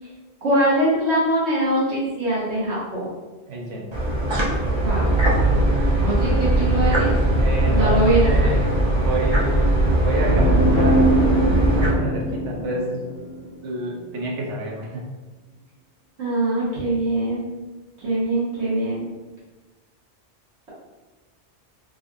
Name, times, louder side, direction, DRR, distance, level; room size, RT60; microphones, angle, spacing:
voice 1, 0.4-3.1 4.8-5.1 6.0-7.2 7.7-8.6 16.2-17.5 18.0-19.0, right 1 dB, 70° right, -9 dB, 1.4 m, -22 dB
voice 2, 3.5-3.9 7.4-8.6 8.9-9.8 10.0-11.1 11.7-13.0 13.6-15.0, right 1 dB, 90° right, -1 dB, 1.1 m, -28 dB
sound 1, 3.9-11.9, right 1 dB, 30° right, 0.5 m, -20 dB
sound 2, 10.1-13.8, right 1 dB, 55° left, 1.0 m, -22 dB
3.9 x 2.5 x 2.5 m, 1.2 s
omnidirectional pair, 1.2 m